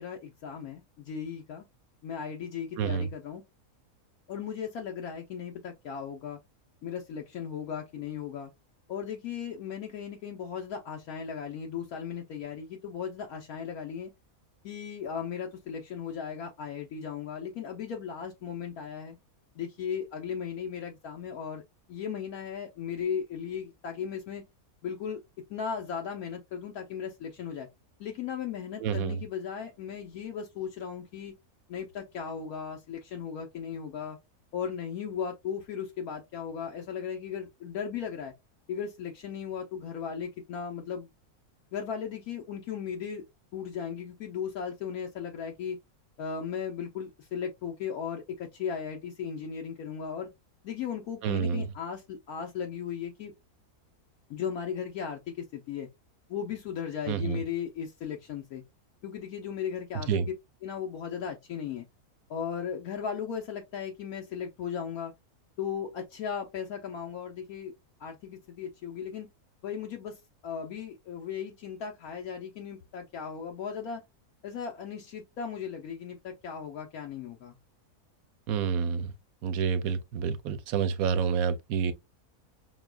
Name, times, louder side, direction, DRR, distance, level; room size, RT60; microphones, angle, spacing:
voice 1, 0.0-1.7 2.0-3.4 4.3-6.4 6.8-8.5 8.9-14.1 14.6-19.2 19.6-21.6 21.9-24.4 24.8-25.2 25.5-27.7 28.0-31.3 31.7-34.2 34.5-38.3 38.7-41.1 41.7-43.2 43.5-45.8 46.2-50.3 50.6-53.3 54.3-55.9 56.3-58.6 59.0-60.1 60.6-61.9 62.3-65.1 65.6-67.7 68.0-69.3 69.6-74.0 74.4-77.6, left 7 dB, 75° left, 1.2 m, -36 dB
voice 2, 2.8-3.1 28.8-29.2 51.2-51.7 57.1-57.4 60.1-60.3 78.5-79.1 79.4-81.9, right 6 dB, 75° right, 1.0 m, -28 dB
6.0 x 2.3 x 2.3 m
omnidirectional pair, 1.6 m